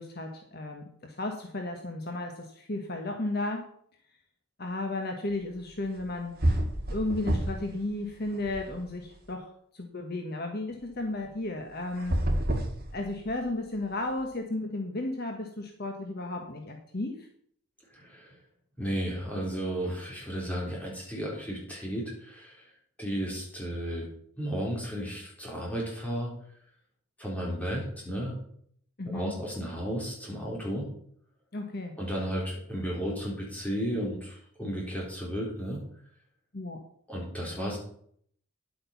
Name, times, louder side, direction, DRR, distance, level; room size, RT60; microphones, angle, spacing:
voice 1, 0.0-3.7 4.6-6.3 6.9-12.2 12.9-17.3 29.0-29.4 31.5-31.9 36.5-36.8, left 2 dB, 45° left, 4 dB, 1.3 m, -34 dB
sound 1, 6.0-6.1 6.4-7.7 8.1-9.2 11.9-13.5, right 1 dB, 45° right, 1.9 m, -29 dB
voice 2, 17.9-18.3 18.8-22.7 23.0-24.1 24.4-26.3 27.2-28.4 29.1-30.9 32.0-35.8 37.1-37.8, equal, 5° left, -3 dB, 3.9 m, -33 dB
10.5 x 8.3 x 5.8 m, 0.64 s
head